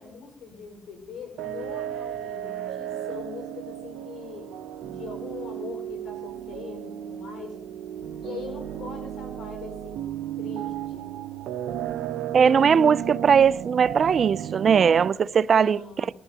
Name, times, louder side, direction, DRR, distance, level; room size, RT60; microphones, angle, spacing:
voice 1, 0.0-7.6 8.2-11.1 15.5-16.1, left 5 dB, 85° left, 4.8 m, -41 dB
sound 1, 1.4-15.1, right 11 dB, 85° right, 0.7 m, -34 dB
voice 2, 12.3-15.8, right 7 dB, 50° right, 0.4 m, -19 dB
20.0 x 13.5 x 2.8 m
cardioid pair, 90°, 0 cm